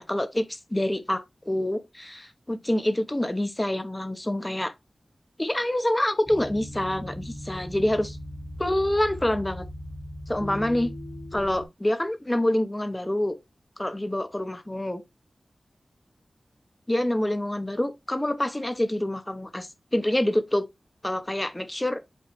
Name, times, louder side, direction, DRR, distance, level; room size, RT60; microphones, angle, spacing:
voice 1, 0.0-4.7 5.4-8.2 8.6-9.7 10.3-10.9 11.3-13.4 13.8-15.0 16.9-20.7 21.0-22.0, left 1 dB, 20° left, 1.0 m, -26 dB
sound 1, 6.3-11.7, left 1 dB, 35° left, 2.2 m, -38 dB
8.5 x 3.6 x 3.2 m
wide cardioid pair, 75°, 0 cm